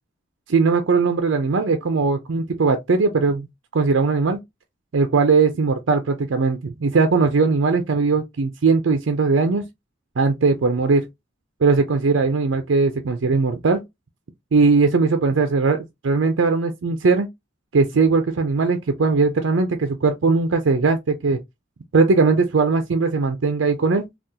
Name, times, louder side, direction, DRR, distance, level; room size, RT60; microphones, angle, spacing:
voice 1, 0.5-3.5 3.7-4.4 4.9-9.6 10.2-11.1 11.6-13.8 14.5-17.3 17.7-21.4 21.9-24.1, right 4 dB, 75° right, 0.5 m, -19 dB
3.6 x 2.4 x 2.7 m
head